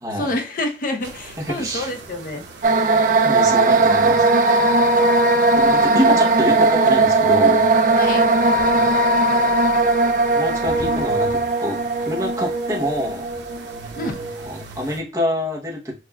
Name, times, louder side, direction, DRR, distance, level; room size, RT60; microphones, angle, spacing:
voice 1, 0.1-2.4 5.9-6.3 8.0-8.3 13.9-14.2, left 1 dB, 50° left, 0.6 m, -27 dB
sound 1, 1.0-15.0, right 3 dB, 85° right, 0.8 m, -40 dB
voice 2, 1.4-1.9 3.2-4.7 5.5-7.7 8.6-8.8 10.3-13.3 14.4-15.9, equal, 15° right, 0.8 m, -26 dB
sound 2, 2.6-14.5, right 2 dB, 45° right, 0.4 m, -18 dB
5.9 x 2.4 x 2.2 m
head